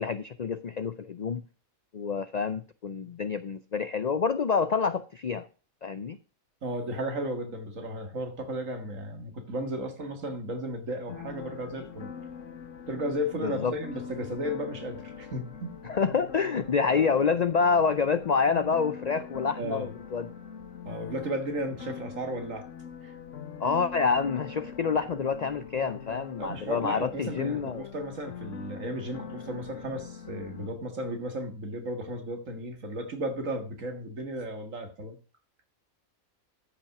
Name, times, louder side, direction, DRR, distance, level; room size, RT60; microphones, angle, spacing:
voice 1, 0.0-1.4 1.9-5.5 5.8-6.2 13.4-13.7 15.8-20.3 23.6-27.9, left 5 dB, 80° left, 13 dB, 0.3 m, -27 dB
voice 2, 6.6-12.1 12.9-15.8 19.6-19.9 20.9-22.7 23.0-23.2 26.4-35.2, right 1 dB, 65° right, 6 dB, 2.2 m, -34 dB
sound 1, 11.1-30.7, left 7 dB, 60° left, 1.4 m, -43 dB
13.5 x 5.6 x 5.8 m, 0.34 s
omnidirectional pair, 1.5 m